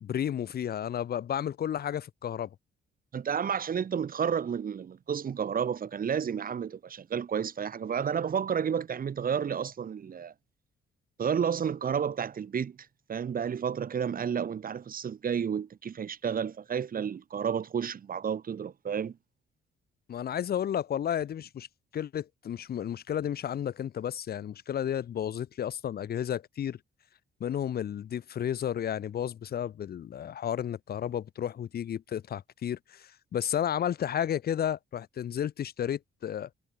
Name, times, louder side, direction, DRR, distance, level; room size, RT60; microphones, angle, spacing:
voice 1, 0.0-2.5 20.1-21.7 21.9-26.8 27.4-36.5, left 9 dB, 50° left, 0.8 m, -32 dB
voice 2, 3.1-10.3 11.2-12.8 13.1-19.2, right 7 dB, 45° right, 1.7 m, -31 dB
cardioid pair, 90°, 20 cm